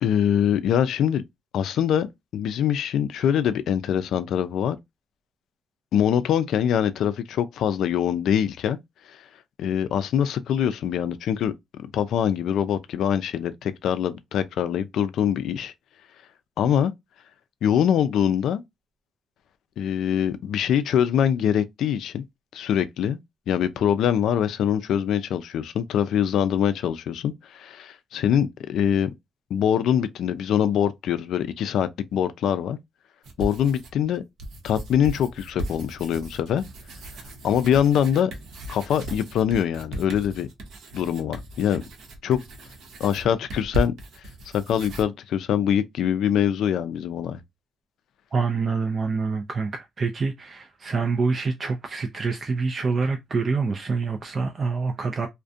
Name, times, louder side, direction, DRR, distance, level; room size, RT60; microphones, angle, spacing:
voice 1, 0.0-1.2 1.5-4.8 5.9-8.8 9.1-9.2 9.6-11.5 11.8-15.7 16.6-16.9 17.6-18.6 19.8-22.2 22.5-23.2 23.5-29.1 29.5-32.8 33.4-34.2 34.6-36.6 37.4-38.3 38.7-40.5 40.9-41.8 42.2-42.4 43.0-43.9 44.5-47.4, left 9 dB, 75° left, 0.3 m, -23 dB
sound 1, 33.2-34.0 34.4-45.0, right 1 dB, 75° right, 0.7 m, -36 dB
voice 2, 48.3-55.3, right 4 dB, 40° right, 0.3 m, -26 dB
2.4 x 2.1 x 2.6 m
cardioid pair, 90°, 0 cm